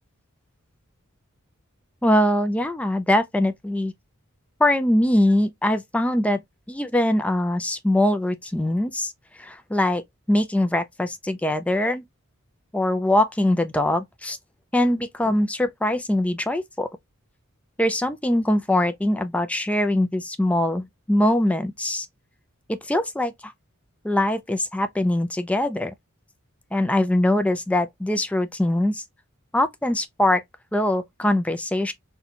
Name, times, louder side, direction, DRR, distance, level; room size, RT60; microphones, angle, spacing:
voice 1, 2.0-3.9 4.6-6.4 6.7-9.1 9.4-10.0 10.3-12.0 12.7-14.4 14.7-16.9 17.8-22.1 22.7-23.5 24.0-25.9 26.7-29.0 29.5-30.4 30.7-31.9, left 1 dB, 5° left, 0.3 m, -22 dB
4.0 x 2.2 x 2.8 m
head